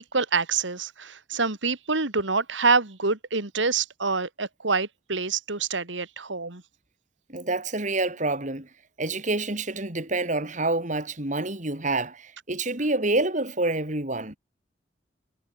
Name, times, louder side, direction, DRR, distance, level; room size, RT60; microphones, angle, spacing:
voice 1, 0.0-6.6, right 4 dB, 85° right, 2.6 m, -26 dB
voice 2, 7.3-8.7 9.0-14.4, right 2 dB, 40° right, 3.6 m, -27 dB
head